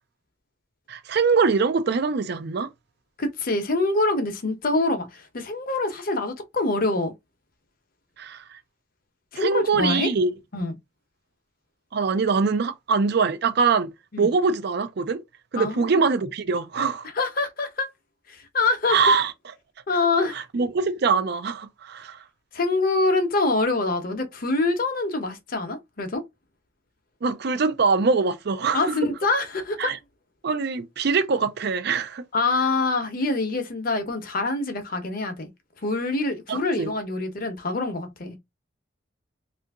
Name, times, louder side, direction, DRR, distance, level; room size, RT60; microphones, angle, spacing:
voice 1, 0.9-2.7 8.2-8.4 9.3-10.3 11.9-13.9 14.2-15.2 15.5-17.1 18.9-19.3 20.3-22.2 27.2-28.9 29.8-30.0 30.4-32.2 36.5-36.9, right 5 dB, 55° right, 0.4 m, -23 dB
voice 2, 3.2-7.1 9.3-10.1 10.5-10.7 14.1-14.3 15.6-16.0 17.1-17.9 18.3-19.0 19.9-20.4 22.5-26.2 28.7-29.9 32.3-35.5 35.8-38.4, left 3 dB, 50° left, 0.8 m, -25 dB
2.7 x 2.5 x 3.4 m
head